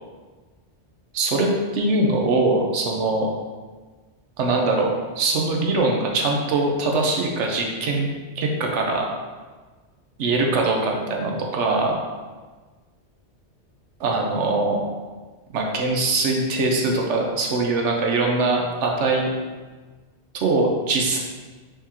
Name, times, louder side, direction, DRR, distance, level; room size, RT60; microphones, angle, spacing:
voice 1, 1.1-3.3 4.4-4.9 5.2-8.1 8.4-9.0 10.2-12.0 14.0-14.8 15.5-19.3 20.4-21.2, right 2 dB, 90° right, 1 dB, 1.0 m, -22 dB
4.9 x 3.6 x 2.9 m, 1.3 s
omnidirectional pair, 1.2 m